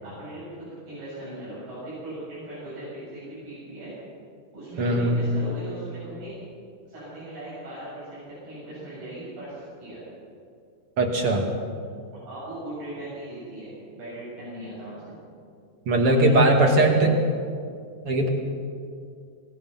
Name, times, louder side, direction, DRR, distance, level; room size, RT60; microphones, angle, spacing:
voice 1, 0.0-3.9 4.5-6.4 6.9-10.0 12.1-15.2 16.0-17.1, right 1 dB, 90° right, -10 dB, 10.0 m, -38 dB
voice 2, 4.8-5.2 11.0-11.5 15.9-17.1 18.0-18.3, right 1 dB, 40° right, 1 dB, 3.1 m, -19 dB
26.5 x 19.5 x 6.0 m, 2.3 s
omnidirectional pair, 4.4 m